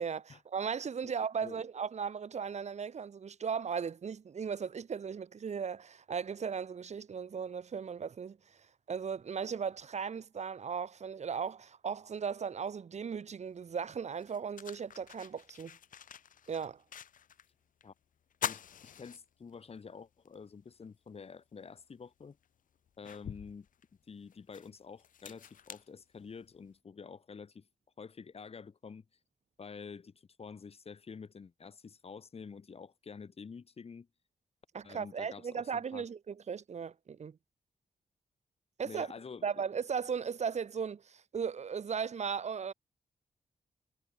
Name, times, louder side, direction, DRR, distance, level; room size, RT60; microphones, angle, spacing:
voice 1, 0.0-8.4 8.9-15.8 16.5-16.8 34.7-37.4 38.8-39.1 39.4-42.7, right 6 dB, 55° right, 2.3 m, -37 dB
sound 1, 13.5-13.6 14.1-17.5 17.8-17.9 18.3-19.8 20.3-20.4 21.8-21.9 22.4-26.6, left 9 dB, 75° left, 1.1 m, -44 dB
voice 2, 18.4-22.4 23.0-23.7 24.1-27.7 28.0-29.0 29.6-34.1 34.8-36.1 38.8-39.5, left 5 dB, 45° left, 4.9 m, -48 dB
wide cardioid pair, 135°, 14 cm